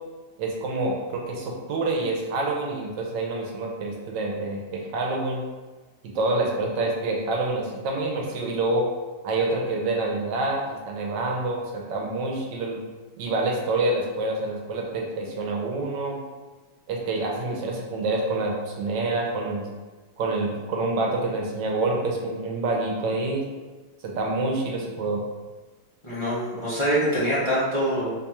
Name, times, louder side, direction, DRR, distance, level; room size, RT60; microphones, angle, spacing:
voice 1, 0.4-5.4 6.0-8.9 9.2-12.8 13.2-16.2 16.9-19.6 20.2-23.4 24.0-25.2, right 2 dB, 85° right, -1 dB, 1.3 m, -27 dB
voice 2, 26.0-28.1, equal, 35° left, -10 dB, 0.4 m, -24 dB
3.2 x 2.3 x 4.1 m, 1.3 s
omnidirectional pair, 1.9 m